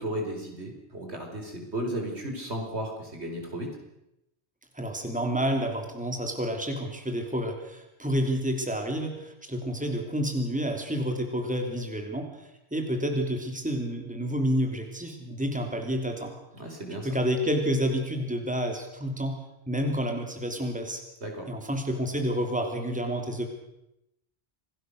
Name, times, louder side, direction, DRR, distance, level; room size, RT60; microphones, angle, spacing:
voice 1, 0.0-3.8 16.5-17.1 21.2-21.5, right 1 dB, 75° right, 2 dB, 5.1 m, -34 dB
voice 2, 4.7-16.3 17.0-19.4 19.7-21.0 21.5-23.5, equal, 5° right, 3 dB, 3.1 m, -29 dB
27.0 x 18.5 x 6.6 m, 0.85 s
omnidirectional pair, 1.1 m